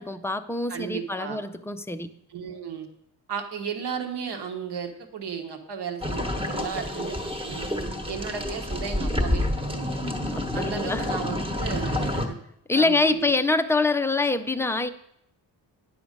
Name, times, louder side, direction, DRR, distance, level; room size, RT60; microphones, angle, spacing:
voice 1, 0.0-2.1 10.2-11.0 12.7-14.9, left 3 dB, 5° left, 8 dB, 0.3 m, -25 dB
voice 2, 0.7-1.4 2.3-2.9 3.3-7.7 8.1-10.0 10.5-12.4 12.7-13.3, right 7 dB, 70° right, 5 dB, 1.3 m, -34 dB
sound 1, 6.0-12.3, left 1 dB, 15° right, 1.0 m, -28 dB
10.5 x 7.0 x 5.1 m, 0.76 s
wide cardioid pair, 150°, 42 cm